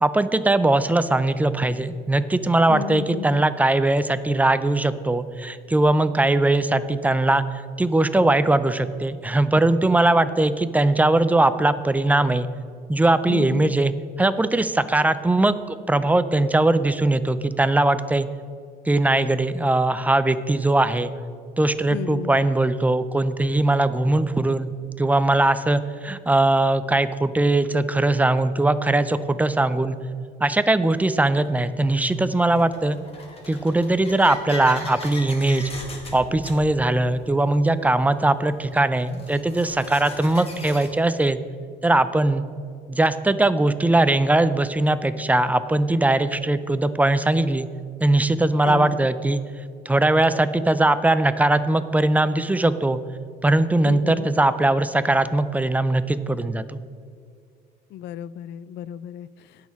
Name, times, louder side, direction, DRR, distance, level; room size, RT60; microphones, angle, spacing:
voice 1, 0.0-7.4 7.8-12.5 12.9-18.3 18.9-21.1 21.6-24.7 25.0-30.0 30.4-33.0 33.5-35.7 36.1-41.4 41.8-42.5 42.9-47.7 48.0-49.4 49.9-53.0 53.4-56.8, right 2 dB, 10° right, 12 dB, 0.4 m, -20 dB
voice 2, 2.7-3.4 13.3-13.7 21.9-22.4 48.6-49.1 53.8-54.4 57.9-59.7, left 12 dB, 75° left, 18 dB, 0.4 m, -34 dB
sound 1, 30.5-30.6 31.5-40.9, left 2 dB, 35° left, 1.7 m, -40 dB
18.5 x 6.3 x 3.6 m, 2.2 s
cardioid pair, 140°, 18 cm